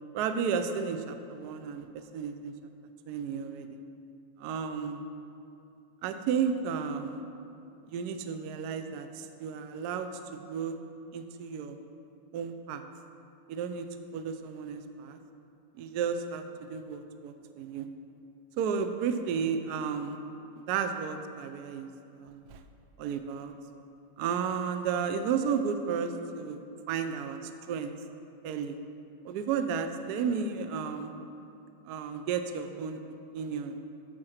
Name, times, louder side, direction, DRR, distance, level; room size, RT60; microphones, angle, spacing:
voice 1, 0.1-2.5 3.1-3.8 4.4-5.0 6.0-7.2 7.9-10.8 11.1-11.8 12.3-12.8 13.5-13.9 14.1-15.2 15.8-17.9 18.6-20.2 20.6-21.9 22.1-22.6 23.0-23.5 24.2-26.6 26.9-27.9 28.4-28.8 29.2-31.1 31.8-33.0 33.3-33.7, right 6 dB, 80° right, 8 dB, 0.8 m, -33 dB
8.7 x 5.8 x 6.4 m, 2.7 s
omnidirectional pair, 2.4 m